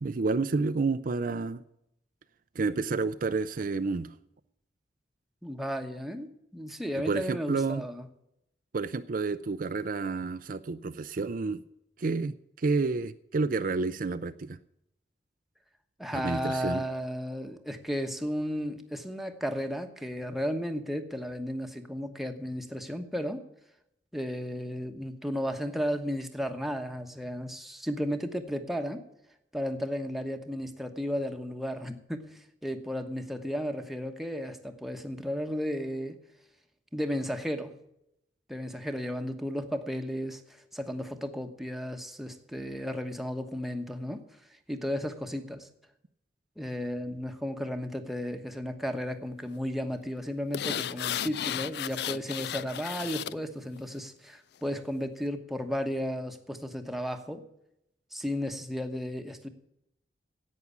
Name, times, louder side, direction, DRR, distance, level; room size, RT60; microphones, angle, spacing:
voice 1, 0.0-1.6 2.6-4.1 7.0-7.8 8.7-11.6 12.0-14.6 16.1-16.8, right 4 dB, 50° right, 11 dB, 0.5 m, -30 dB
voice 2, 5.4-8.1 16.0-23.4 24.1-29.0 29.5-36.2 36.9-37.7 38.5-44.2 44.7-45.7 46.6-57.4 58.1-59.5, equal, ahead, 5 dB, 1.2 m, -34 dB
sound 1, 50.5-53.4 53.8-53.9, left 10 dB, 65° left, 0.4 m, -34 dB
11.0 x 8.5 x 8.3 m, 0.79 s
head